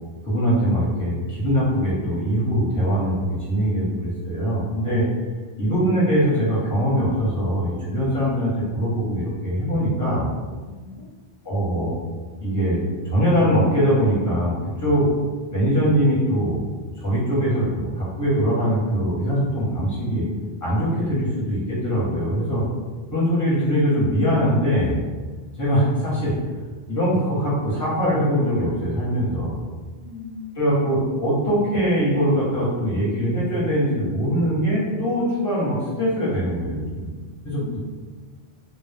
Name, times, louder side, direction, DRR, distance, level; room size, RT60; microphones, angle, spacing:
voice 1, 0.2-5.0 5.6-10.3 11.4-11.9 12.4-12.8 13.0-15.1 15.5-16.6 17.0-20.2 20.6-22.6 23.1-24.9 25.6-26.3 26.9-29.6 30.5-37.0 37.4-37.8, equal, 20° left, -9 dB, 0.9 m, -22 dB
voice 2, 10.6-11.0 30.0-30.7 37.5-37.8, left 5 dB, 45° left, -9 dB, 0.5 m, -39 dB
2.1 x 2.0 x 3.2 m, 1.4 s
omnidirectional pair, 1.1 m